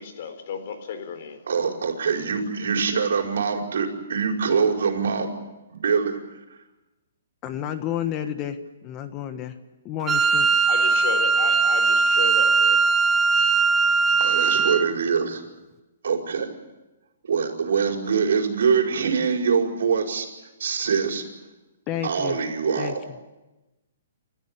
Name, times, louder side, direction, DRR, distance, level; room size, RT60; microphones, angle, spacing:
voice 1, 0.0-1.4 10.7-12.8, left 6 dB, 50° left, 8 dB, 4.0 m, -33 dB
voice 2, 1.5-5.3 5.7-6.2 14.2-15.4 16.0-16.5 17.2-20.3 20.6-21.2 22.0-23.0, right 6 dB, 75° right, 2 dB, 5.1 m, -24 dB
voice 3, 7.4-8.6 8.8-9.5 9.8-10.5 21.9-22.4 22.8-22.9, left 10 dB, 25° left, 9 dB, 1.4 m, -30 dB
Wind instrument woodwind instrument, 10.1-14.9, right 4 dB, 15° right, 0.8 m, -20 dB
29.0 x 14.5 x 9.9 m, 1.1 s
hypercardioid pair, 160°, 0 cm